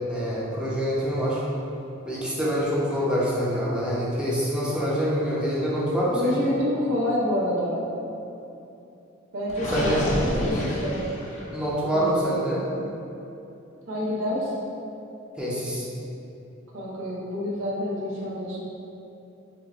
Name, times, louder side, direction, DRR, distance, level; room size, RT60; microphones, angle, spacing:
voice 1, 0.1-1.4 2.0-6.4 9.7-10.0 10.4-10.7 11.5-12.6 15.4-15.8, equal, 5° right, -8 dB, 0.7 m, -26 dB
voice 2, 6.1-7.8 9.3-11.0 11.9-12.2 13.9-14.5 16.7-18.6, left 1 dB, 70° right, -5 dB, 0.8 m, -27 dB
Gurgling, 9.5-11.6, left 1 dB, 35° left, 0.6 m, -30 dB
6.1 x 2.2 x 2.4 m, 2.8 s
head